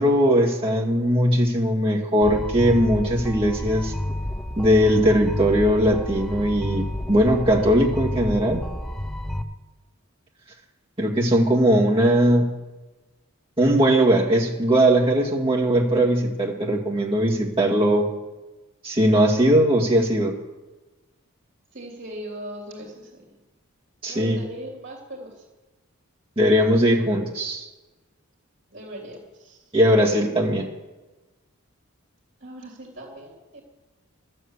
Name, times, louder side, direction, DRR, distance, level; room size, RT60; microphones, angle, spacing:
voice 1, 0.0-3.9 4.6-8.6 11.0-12.4 13.6-18.1 18.8-20.4 24.0-24.4 26.4-27.7 29.7-30.7, equal, 25° right, -3 dB, 2.1 m, -19 dB
sound 1, 2.2-9.4, left 1 dB, 5° left, 0.5 m, -30 dB
voice 2, 21.7-23.2 24.1-25.3 28.7-29.6 32.4-33.6, right 1 dB, 50° right, -2 dB, 3.2 m, -39 dB
12.5 x 7.8 x 8.2 m, 1.1 s
head